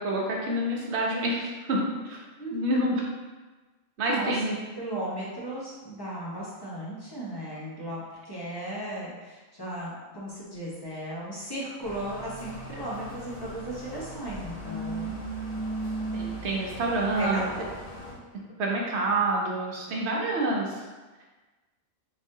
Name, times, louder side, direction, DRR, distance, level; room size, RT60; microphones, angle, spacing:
voice 1, 0.0-1.8 2.0-2.2 2.5-2.9 4.0-4.5 16.1-17.5 18.6-20.8, right 1 dB, 60° right, -2 dB, 1.0 m, -27 dB
voice 2, 2.4-3.1 4.0-15.2 17.2-17.7, right 1 dB, 25° left, -7 dB, 0.7 m, -36 dB
sound 1, 11.8-18.1, right 2 dB, 40° left, 1.0 m, -37 dB
3.8 x 3.2 x 2.7 m, 1.3 s
omnidirectional pair, 1.3 m